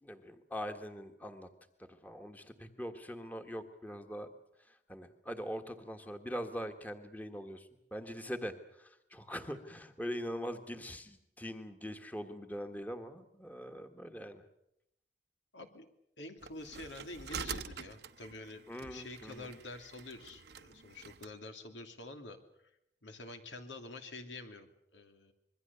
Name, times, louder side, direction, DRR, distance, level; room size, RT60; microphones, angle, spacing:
voice 1, 0.0-1.5 2.0-4.3 4.7-14.4 18.7-19.5, equal, 10° left, 6 dB, 1.5 m, -42 dB
voice 2, 15.5-15.9 16.2-22.4 23.0-25.3, left 2 dB, 90° left, 6 dB, 2.8 m, -48 dB
sound 1, 16.4-21.3, right 6 dB, 65° right, 0.9 m, -46 dB
26.0 x 22.0 x 7.0 m, 0.79 s
head